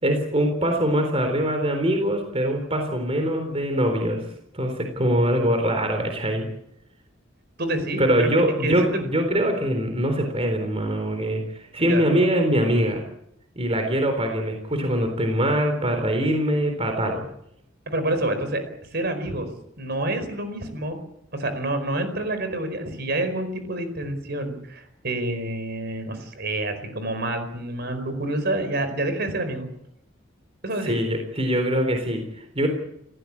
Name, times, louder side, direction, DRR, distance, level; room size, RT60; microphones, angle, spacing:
voice 1, 0.0-4.2 4.5-6.5 8.0-13.0 13.6-17.2 30.8-32.7, equal, 30° right, 4 dB, 3.9 m, -23 dB
voice 2, 7.6-8.3 8.6-8.9 11.8-12.1 17.9-18.6 18.9-19.5 19.8-21.0 21.3-29.7 30.6-31.0, right 1 dB, 55° right, 9 dB, 4.8 m, -28 dB
30.0 x 15.5 x 8.7 m, 0.77 s
head